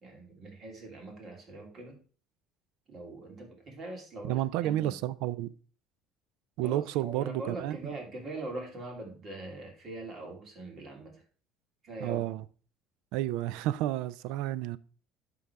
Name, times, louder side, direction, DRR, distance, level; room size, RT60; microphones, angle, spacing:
voice 1, 0.0-2.0 2.9-4.9 6.6-11.2 11.8-12.2, right 2 dB, 40° right, 2.7 m, -42 dB
voice 2, 4.2-5.5 6.6-7.8 12.0-12.4 13.1-14.8, right 14 dB, 80° right, 0.4 m, -31 dB
11.5 x 3.9 x 4.6 m
cardioid pair, 130°, 0 cm